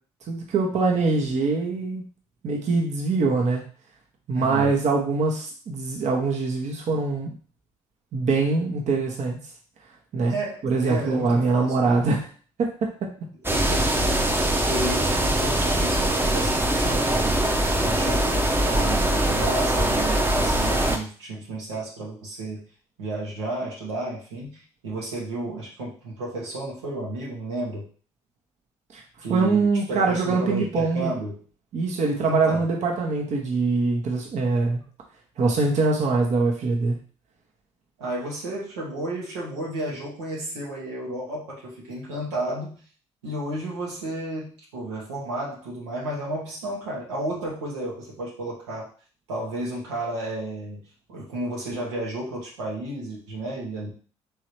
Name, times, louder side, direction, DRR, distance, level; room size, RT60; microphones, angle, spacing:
voice 1, 0.3-2.0 2.4-3.6 4.3-7.3 8.1-9.4 10.1-10.4 10.6-12.3 12.6-12.9 28.9-29.0 29.3-31.1 31.7-34.8 35.4-37.0, right 3 dB, 55° right, 0 dB, 1.0 m, -23 dB
voice 2, 4.3-4.7 10.2-12.0 13.5-13.9 14.7-17.4 17.8-22.7 23.0-27.9 29.2-31.4 32.2-32.7 38.0-42.8 43.2-48.9 49.3-53.9, right 1 dB, 85° right, -4 dB, 1.1 m, -32 dB
sound 1, 13.4-21.0, right 1 dB, 15° right, 0.8 m, -22 dB
3.7 x 3.3 x 3.1 m, 0.41 s
hypercardioid pair, 50°, 15 cm